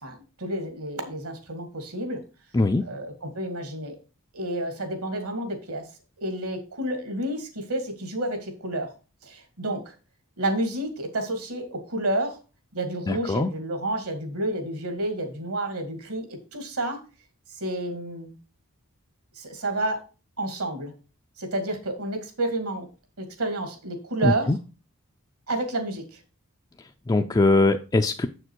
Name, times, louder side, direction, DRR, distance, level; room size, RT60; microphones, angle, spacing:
voice 1, 0.0-2.2 2.8-3.9 4.3-5.8 6.2-8.9 9.2-9.9 10.4-12.4 12.7-17.0 17.6-18.3 19.4-20.0 20.4-20.9 21.4-22.9 23.2-24.5 25.5-26.2, right 1 dB, 70° right, 2.1 m, -30 dB
voice 2, 13.1-13.5 24.2-24.6 27.1-28.3, left 2 dB, 20° left, 0.4 m, -21 dB
7.3 x 6.6 x 4.6 m
head